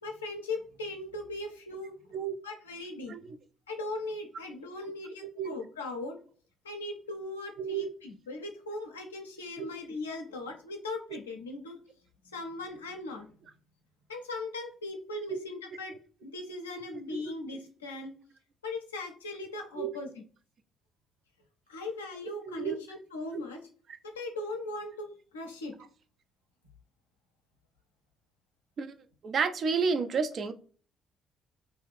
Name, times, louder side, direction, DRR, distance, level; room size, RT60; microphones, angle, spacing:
voice 1, 0.0-2.1 2.4-3.2 3.7-6.2 6.6-11.8 12.2-13.3 14.1-16.0 16.2-18.1 18.6-20.2 21.7-23.7 24.0-25.8, left 2 dB, 80° left, 0.5 m, -39 dB
voice 2, 7.6-7.9 9.6-9.7 15.3-15.4 19.8-19.9 22.6-22.8 28.8-28.9 29.2-30.5, right 5 dB, 45° right, 0.4 m, -30 dB
2.6 x 2.4 x 3.1 m
figure-of-eight pair, 45°, 0 cm